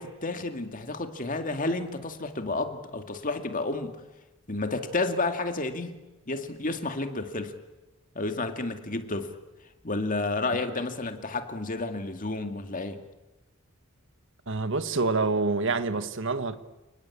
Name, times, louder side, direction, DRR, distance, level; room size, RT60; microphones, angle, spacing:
voice 1, 0.0-4.0 4.5-6.0 6.3-7.5 8.2-9.3 9.8-13.0, left 2 dB, 40° left, 2.2 m, -31 dB
voice 2, 14.5-16.6, right 3 dB, 65° right, 1.4 m, -27 dB
30.0 x 19.5 x 8.6 m
head